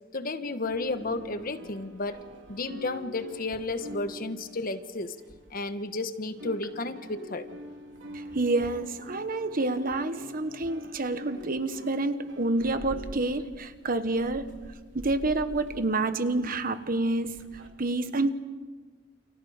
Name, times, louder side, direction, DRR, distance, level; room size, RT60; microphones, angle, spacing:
voice 1, 0.1-2.2 2.5-5.1 5.5-7.5, left 2 dB, 50° left, 1.3 m, -32 dB
sound 1, 0.6-6.0 6.2-17.7, left 1 dB, 80° right, 2.9 m, -45 dB
voice 2, 8.1-14.6 14.9-18.4, right 2 dB, 50° right, 1.4 m, -28 dB
29.0 x 29.0 x 5.1 m
head